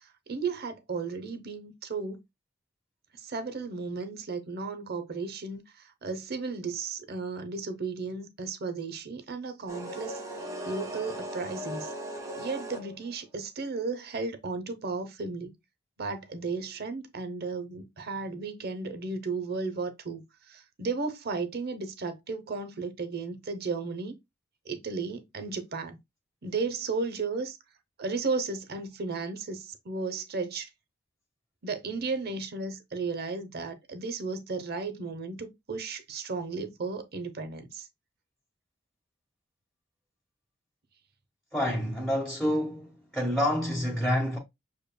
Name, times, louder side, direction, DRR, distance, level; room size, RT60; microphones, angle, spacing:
voice 1, 0.3-2.2 3.2-5.6 6.0-10.2 10.7-11.9 12.4-15.5 16.0-20.2 20.5-24.2 24.7-26.0 26.4-27.6 28.0-30.7 31.6-37.9, right 4 dB, 55° right, 0.8 m, -34 dB
sound 1, 9.7-13.1, equal, 15° right, 1.0 m, -38 dB
voice 2, 41.5-44.4, left 1 dB, ahead, 1.2 m, -28 dB
6.8 x 2.9 x 2.2 m
head